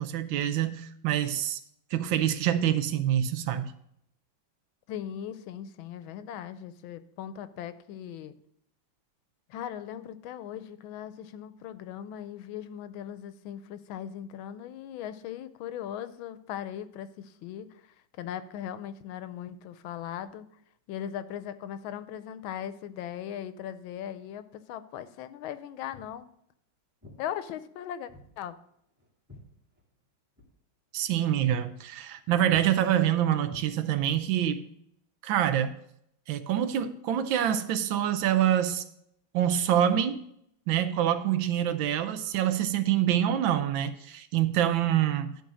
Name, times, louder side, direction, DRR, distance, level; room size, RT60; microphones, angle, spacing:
voice 1, 0.0-1.6 1.9-3.7 30.9-34.6 35.2-35.8 36.3-38.8 39.3-40.2 40.7-45.4, right 10 dB, 80° right, 11 dB, 1.4 m, -26 dB
voice 2, 4.9-8.4 9.5-17.7 18.2-20.5 20.9-26.3 27.2-28.1 28.4-28.6, left 10 dB, 85° left, 13 dB, 1.4 m, -39 dB
Walk footsteps, 25.9-26.2 27.0-27.2 28.1-28.3 28.6-30.1 30.4-30.6 31.0-31.1 31.4-31.7 32.0-32.2 32.5-32.7 33.5-34.2, left 2 dB, 5° right, 2.2 m, -50 dB
12.0 x 4.0 x 6.2 m, 0.72 s
omnidirectional pair, 2.2 m